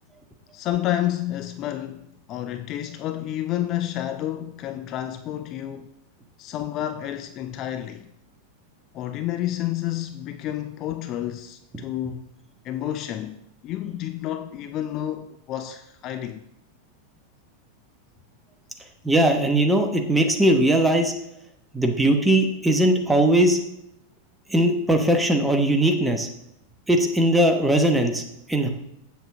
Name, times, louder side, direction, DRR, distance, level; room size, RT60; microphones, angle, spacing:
voice 1, 0.5-5.9 6.4-8.1 8.9-12.3 12.6-13.4 13.6-16.4, left 12 dB, 35° left, 0.4 m, -30 dB
voice 2, 19.0-21.1 21.7-23.6 24.5-26.3 26.9-28.2 28.5-28.7, right 1 dB, 5° right, 1.0 m, -19 dB
7.8 x 7.2 x 3.6 m
figure-of-eight pair, 90°, 0 cm